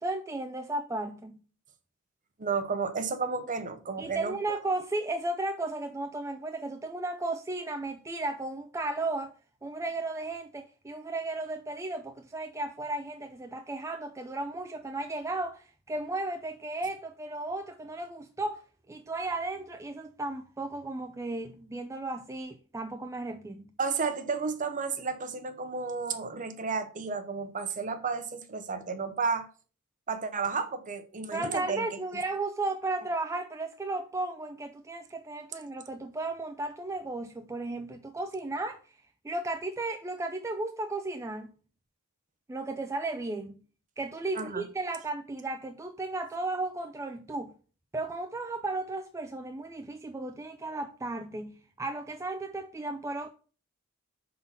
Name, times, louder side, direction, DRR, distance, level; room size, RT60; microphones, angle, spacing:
voice 1, 0.0-1.4 4.0-9.3 9.6-23.7 31.3-38.8 39.2-41.5 42.5-43.6 44.0-47.5 47.9-53.3, right 2 dB, 15° right, 0.4 m, -34 dB
voice 2, 2.4-4.4 23.8-29.5 30.1-31.9 44.3-44.6, right 5 dB, 35° right, 0.8 m, -32 dB
5.6 x 3.8 x 5.7 m
head